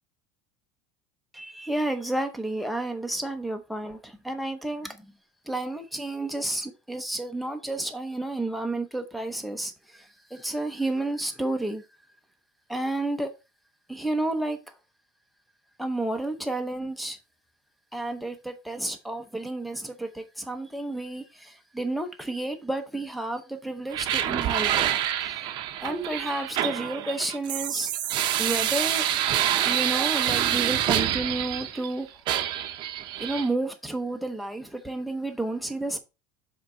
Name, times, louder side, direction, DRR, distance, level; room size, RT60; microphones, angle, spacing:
voice 1, 1.3-5.1 5.5-11.9 12.7-13.3 13.9-14.7 15.8-17.2 17.9-25.4 25.8-27.9 28.4-29.1 29.6-32.2 33.2-36.0, right 2 dB, ahead, 0.7 m, -31 dB
sound 1, 23.9-31.9 32.3-33.5, right 11 dB, 40° right, 0.7 m, -27 dB
7.2 x 3.8 x 4.3 m
cardioid pair, 175°, 13 cm